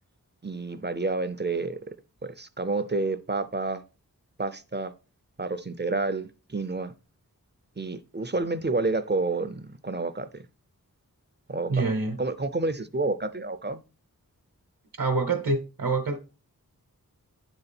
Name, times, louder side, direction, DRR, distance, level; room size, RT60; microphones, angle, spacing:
voice 1, 0.4-1.9 2.2-3.8 4.4-4.9 5.4-6.9 7.8-10.4 11.5-11.9 12.2-13.8, right 3 dB, 30° right, 0.5 m, -29 dB
voice 2, 11.7-12.2 15.0-16.2, right 3 dB, 65° right, 0.9 m, -26 dB
9.4 x 3.9 x 4.2 m
wide cardioid pair, 55°, 36 cm